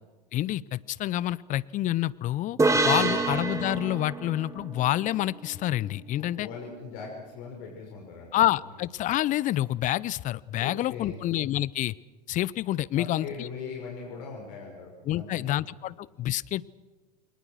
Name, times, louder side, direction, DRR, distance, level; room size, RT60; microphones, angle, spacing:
voice 1, 0.3-2.6 2.8-6.5 8.3-11.9 12.3-13.3 15.1-16.7, left 14 dB, 35° left, 21 dB, 0.7 m, -28 dB
sound 1, 2.6-6.1, right 3 dB, 15° right, 3.2 m, -28 dB
voice 2, 2.9-3.3 6.2-8.3 10.6-11.2 12.9-15.4, left 5 dB, 55° left, 0 dB, 5.8 m, -40 dB
29.0 x 22.5 x 6.5 m, 1.3 s
hypercardioid pair, 85°, 21 cm